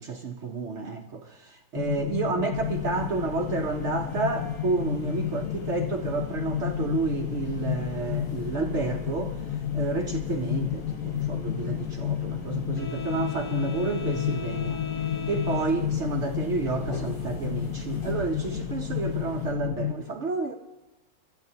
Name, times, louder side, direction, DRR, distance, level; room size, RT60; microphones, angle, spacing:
voice 1, 0.0-9.4 9.7-14.8 15.3-20.5, right 4 dB, 65° right, 0.7 m, -30 dB
sound 1, 1.7-19.9, left 10 dB, 85° left, 0.7 m, -31 dB
sound 2, 2.5-19.5, left 2 dB, 40° left, 2.8 m, -41 dB
25.0 x 12.5 x 2.8 m
omnidirectional pair, 2.1 m